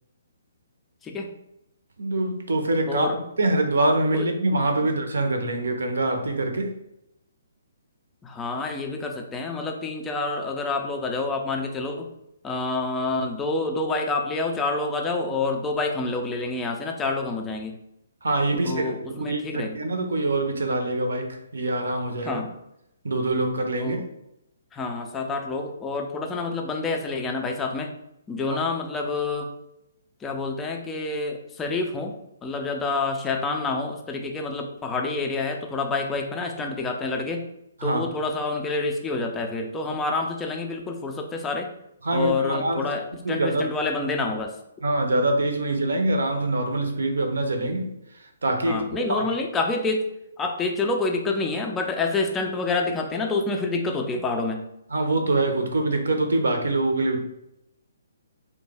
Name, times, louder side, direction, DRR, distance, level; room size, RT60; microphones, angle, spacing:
voice 1, 2.0-6.8 18.2-22.4 23.0-24.0 28.5-28.6 37.8-38.0 42.0-42.8 43.2-43.7 44.8-49.3 54.9-57.2, right 2 dB, 65° right, 5 dB, 0.6 m, -25 dB
voice 2, 2.9-3.2 4.1-4.3 8.2-12.1 12.4-17.8 18.6-19.8 22.2-22.5 23.8-24.0 24.7-27.9 28.3-29.5 30.2-32.1 32.4-37.4 37.8-41.7 42.1-44.5 48.7-50.1 50.4-54.6, left 3 dB, 10° left, 2 dB, 0.4 m, -28 dB
3.3 x 2.1 x 3.3 m, 0.83 s
figure-of-eight pair, 130°, 0 cm